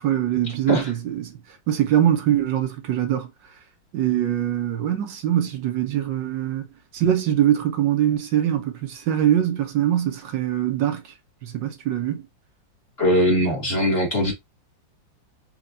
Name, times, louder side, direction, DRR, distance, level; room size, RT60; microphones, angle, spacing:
voice 1, 0.0-1.4 1.7-3.3 3.9-6.7 6.9-11.0 11.4-12.2, right 11 dB, 70° right, 1.5 m, -23 dB
voice 2, 13.0-14.3, left 1 dB, 35° left, 1.9 m, -20 dB
4.4 x 3.4 x 2.5 m
omnidirectional pair, 2.1 m